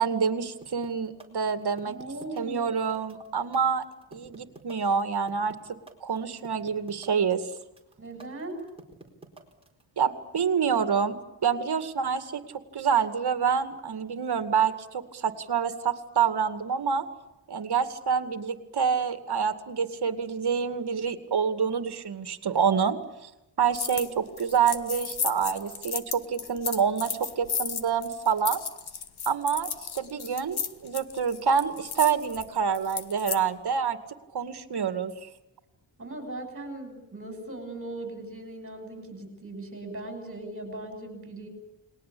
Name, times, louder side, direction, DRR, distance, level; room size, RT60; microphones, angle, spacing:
voice 1, 0.0-2.0 2.4-3.8 4.1-5.6 6.0-7.4 10.0-12.4 12.7-17.1 17.5-23.3 23.6-28.6 29.3-29.7 30.0-34.0 34.3-35.3, right 6 dB, 55° right, 10 dB, 2.3 m, -27 dB
sound 1, 0.6-9.8, right 2 dB, 10° right, 4.3 m, -49 dB
voice 2, 1.8-2.7 8.0-8.6 36.0-41.5, right 2 dB, 30° right, 6 dB, 7.8 m, -39 dB
sound 2, 23.7-24.1 24.4-33.4, left 6 dB, 55° left, 1.7 m, -34 dB
30.0 x 21.0 x 8.6 m, 0.94 s
wide cardioid pair, 170°, 46 cm